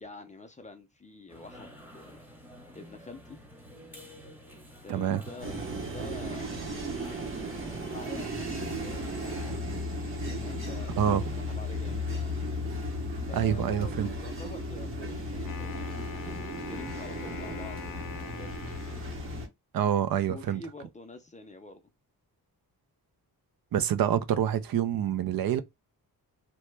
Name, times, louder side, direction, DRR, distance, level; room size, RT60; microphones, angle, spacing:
voice 1, 0.0-2.2 2.7-3.4 4.8-5.5 5.9-6.5 7.9-9.4 10.3-12.4 13.3-16.0 16.7-18.5 20.3-21.8, left 3 dB, 20° left, 0.5 m, -46 dB
sound 1, 1.3-9.6, equal, 5° right, 0.9 m, -48 dB
voice 2, 4.9-5.2 11.0-11.3 13.3-14.1 19.7-20.6 23.7-25.6, right 10 dB, 70° right, 0.5 m, -27 dB
sound 2, 5.4-19.5, left 1 dB, 35° right, 0.9 m, -35 dB
Wind instrument woodwind instrument, 15.3-19.3, left 6 dB, 60° left, 0.7 m, -43 dB
2.9 x 2.2 x 3.2 m
wide cardioid pair, 135°, 37 cm